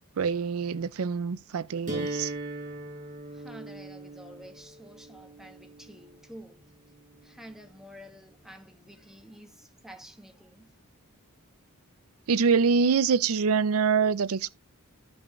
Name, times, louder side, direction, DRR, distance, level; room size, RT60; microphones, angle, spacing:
voice 1, 0.2-2.3 12.3-14.5, right 5 dB, 75° right, 0.5 m, -25 dB
sound 1, 1.9-7.8, right 2 dB, 35° right, 4.9 m, -40 dB
voice 2, 3.3-6.7 7.2-10.7, equal, ahead, 1.6 m, -49 dB
14.5 x 5.4 x 3.1 m
head